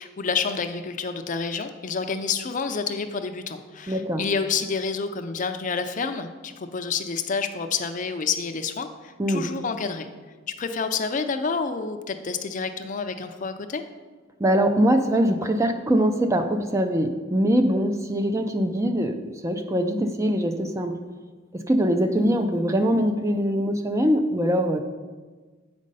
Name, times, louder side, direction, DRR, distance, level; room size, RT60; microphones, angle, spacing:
voice 1, 0.0-10.1 10.5-13.8, left 5 dB, 40° left, 8 dB, 0.5 m, -29 dB
voice 2, 3.9-4.2 9.2-9.5 14.4-21.0 21.5-24.8, equal, 15° right, 7 dB, 0.4 m, -23 dB
8.3 x 5.2 x 5.4 m, 1.4 s
head